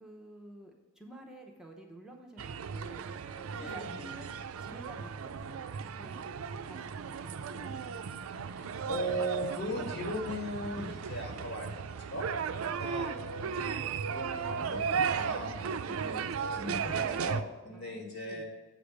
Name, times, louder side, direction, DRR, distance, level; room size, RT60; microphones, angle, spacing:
voice 1, 0.0-3.1 3.3-4.3 4.6-5.6 6.0-6.3 6.6-7.8 12.6-12.8 15.9-16.1 17.7-18.4, right 1 dB, 5° right, 0 dB, 0.8 m, -51 dB
sound 1, 2.4-17.4, right 6 dB, 90° right, 0.4 m, -36 dB
voice 2, 3.5-3.9 8.6-12.3 12.6-15.5 16.0-18.4, equal, 65° left, 1 dB, 2.0 m, -38 dB
7.9 x 5.0 x 6.4 m, 1.2 s
head